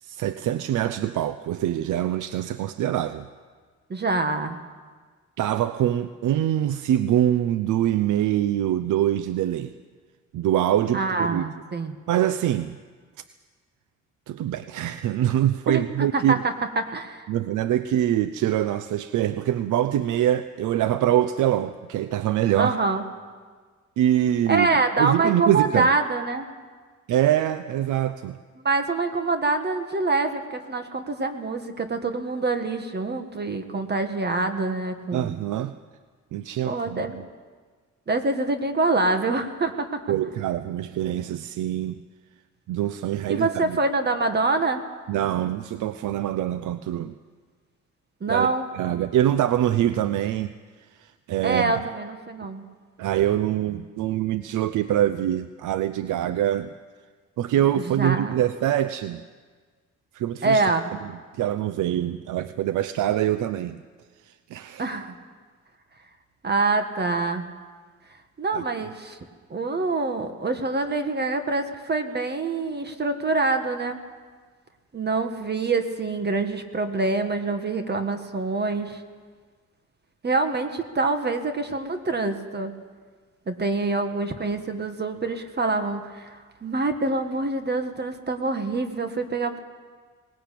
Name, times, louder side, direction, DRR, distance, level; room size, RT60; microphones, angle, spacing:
voice 1, 0.0-3.3 5.4-9.7 10.3-11.5 12.1-12.8 14.3-16.4 17.3-22.8 24.0-25.9 27.1-28.4 35.1-35.7 36.3-37.2 40.1-42.0 42.7-43.8 45.1-47.2 48.3-48.5 48.7-50.5 51.0-51.8 53.0-56.7 57.4-59.2 60.1-60.6 61.3-63.8 64.2-64.9 68.5-68.6, right 12 dB, 80° right, 12 dB, 0.7 m, -24 dB
voice 2, 3.9-4.6 10.9-12.0 15.7-17.3 22.6-23.0 24.5-26.5 28.6-35.4 36.6-37.2 38.1-40.0 43.3-44.8 48.2-48.7 51.4-52.6 57.9-58.4 60.4-60.9 64.8-65.2 66.4-67.4 68.4-69.2 69.5-74.0 74.9-79.0 80.2-82.7 83.5-89.6, right 3 dB, 35° right, 7 dB, 1.8 m, -25 dB
19.5 x 17.5 x 8.5 m, 1.5 s
cardioid pair, 90°, 30 cm